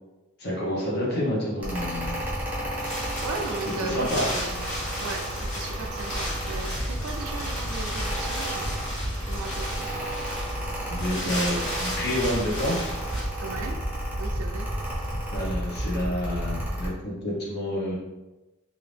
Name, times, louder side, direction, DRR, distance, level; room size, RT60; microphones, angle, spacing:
voice 1, 0.4-2.2 3.8-4.3 10.9-13.0 15.3-17.9, left 1 dB, 50° left, -5 dB, 1.0 m, -29 dB
Mechanical fan, 1.6-16.9, equal, 5° right, 0.7 m, -32 dB
Wind, 2.0-13.2, equal, 75° left, 1.3 m, -35 dB
voice 2, 2.9-4.7 5.0-8.7 9.2-10.0 11.1-11.9 13.4-13.8 14.2-14.7, right 4 dB, 75° right, 3 dB, 0.4 m, -37 dB
2.8 x 2.5 x 3.4 m, 1.1 s
head